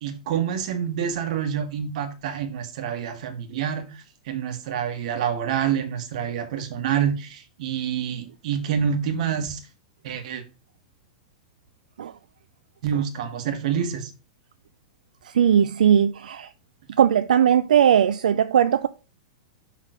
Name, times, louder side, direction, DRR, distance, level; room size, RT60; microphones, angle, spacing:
voice 1, 0.0-9.6 10.0-10.4 12.8-14.1, right 8 dB, 65° right, 1.6 m, -27 dB
voice 2, 15.2-16.5 17.0-18.9, right 9 dB, 90° right, 0.4 m, -19 dB
6.4 x 3.6 x 5.1 m
hypercardioid pair, 125°, 4 cm